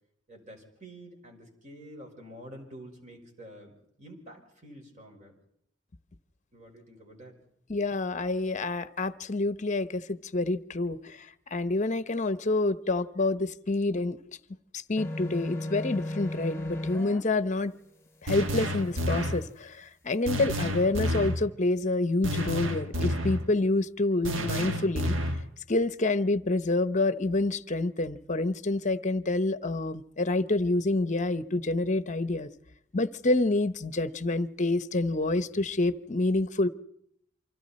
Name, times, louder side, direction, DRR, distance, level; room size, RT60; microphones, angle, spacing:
voice 1, 0.3-5.3 6.5-7.4, right 1 dB, 40° right, 2 dB, 5.3 m, -48 dB
voice 2, 7.7-11.3 11.5-14.4 14.7-17.7 18.2-25.2 25.7-32.5 32.9-36.7, left 2 dB, 40° left, 14 dB, 0.8 m, -28 dB
sound 1, 15.0-17.2, left 1 dB, 15° left, 2.2 m, -35 dB
sound 2, 18.3-19.5 20.3-21.4 22.2-23.5 24.2-25.5, equal, 80° right, 1.4 m, -30 dB
28.5 x 25.0 x 4.3 m, 0.73 s
head